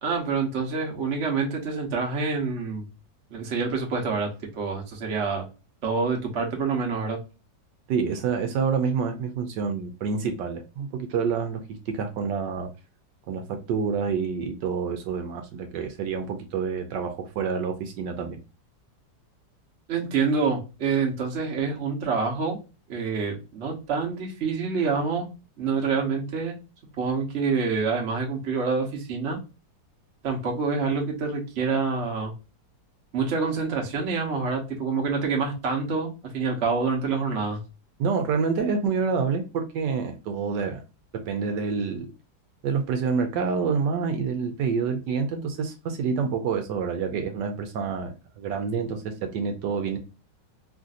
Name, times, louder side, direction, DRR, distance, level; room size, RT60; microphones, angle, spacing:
voice 1, 0.0-2.9 3.3-5.5 5.8-7.2 19.9-22.6 22.9-25.3 25.6-26.6 27.0-29.4 30.2-32.3 33.1-37.6, right 5 dB, 50° right, 0 dB, 1.1 m, -27 dB
voice 2, 7.9-12.7 13.3-18.4 38.0-40.8 41.1-42.1 42.6-50.0, right 5 dB, 80° right, 6 dB, 1.3 m, -27 dB
3.2 x 2.6 x 2.4 m, 0.30 s
omnidirectional pair, 1.9 m